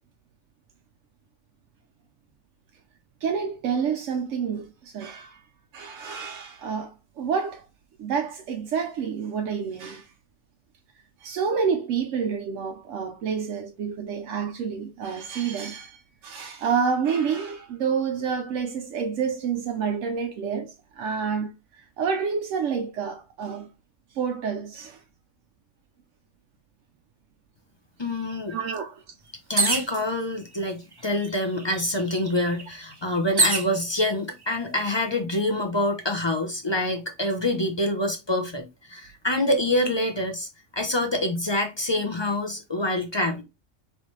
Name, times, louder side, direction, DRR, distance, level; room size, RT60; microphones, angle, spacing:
voice 1, 3.2-5.4 5.7-7.7 8.0-10.1 11.2-21.5 22.0-23.7 24.1-25.0 28.5-29.0 31.2-31.3, right 6 dB, 90° right, 1.0 m, -28 dB
voice 2, 28.0-28.6 29.5-40.5 40.7-43.4, left 1 dB, 30° left, 0.6 m, -26 dB
sound 1, 29.6-30.0 30.9-31.0 31.3-33.7 34.5-35.0, right 3 dB, 35° right, 0.4 m, -25 dB
4.1 x 3.3 x 3.1 m
omnidirectional pair, 1.3 m